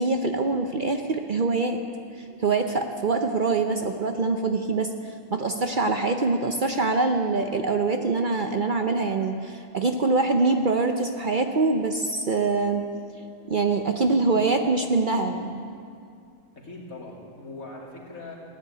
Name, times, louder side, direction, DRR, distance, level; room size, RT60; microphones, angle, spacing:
voice 1, 0.0-1.8 2.1-4.9 5.3-12.9 13.5-15.7, right 3 dB, 45° right, 5 dB, 0.7 m, -24 dB
voice 2, 16.5-18.4, left 2 dB, 90° left, -3 dB, 3.2 m, -41 dB
15.5 x 9.9 x 8.5 m, 2.3 s
omnidirectional pair, 1.4 m